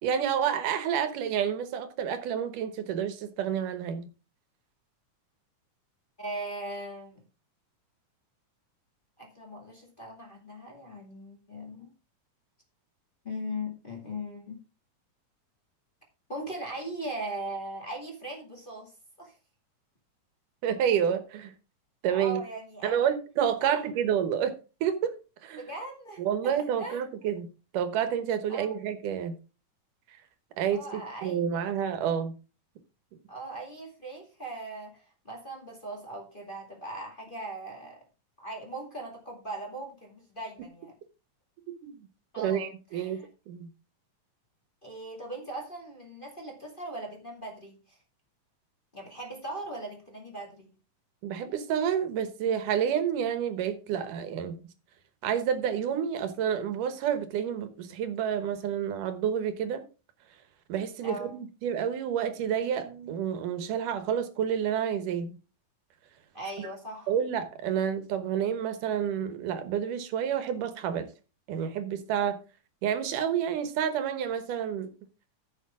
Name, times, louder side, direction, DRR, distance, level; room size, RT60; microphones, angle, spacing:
voice 1, 0.0-4.1 20.6-21.5 22.0-22.4 22.8-25.2 25.4-25.6 26.2-27.5 27.7-29.3 30.6-32.3 41.7-41.9 42.4-43.2 43.5-43.7 51.2-54.6 55.2-59.9 60.7-65.3 66.6-66.7 67.1-71.1 71.5-72.4 72.8-74.9, right 8 dB, 80° right, 2.7 m, -29 dB
voice 2, 6.2-7.2 9.2-11.9 13.2-14.6 16.3-18.9 19.2-19.4 22.1-23.1 23.6-23.8 25.6-27.0 28.5-28.8 30.7-31.7 33.3-38.0 38.4-40.9 42.3-43.3 44.8-48.0 48.9-50.7 61.0-61.3 66.3-67.1, right 1 dB, 20° left, 2.0 m, -39 dB
14.5 x 6.5 x 3.6 m
omnidirectional pair, 3.6 m